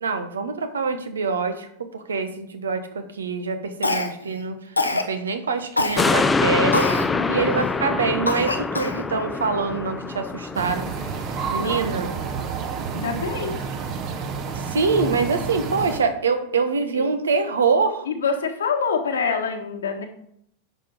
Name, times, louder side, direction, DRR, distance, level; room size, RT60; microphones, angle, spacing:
voice 1, 0.0-10.9 11.1-12.1 14.5-18.1, right 4 dB, 70° right, 9 dB, 1.2 m, -25 dB
Cough, 3.8-4.3 4.8-5.1 5.8-6.0 6.7-7.1 7.6-7.7 8.3-9.0, left 2 dB, 85° left, 0.9 m, -24 dB
sound 1, 6.0-12.6 13.0-13.1, left 3 dB, 10° left, 0.6 m, -25 dB
voice 2, 7.1-7.6 11.6-11.9 12.9-13.6 16.9-17.0 18.1-20.1, left 5 dB, 65° left, 4 dB, 1.5 m, -26 dB
sound 2, 10.5-16.0, right 5 dB, 35° right, 1.2 m, -30 dB
9.9 x 6.5 x 5.1 m, 0.69 s
figure-of-eight pair, 90°, 0 cm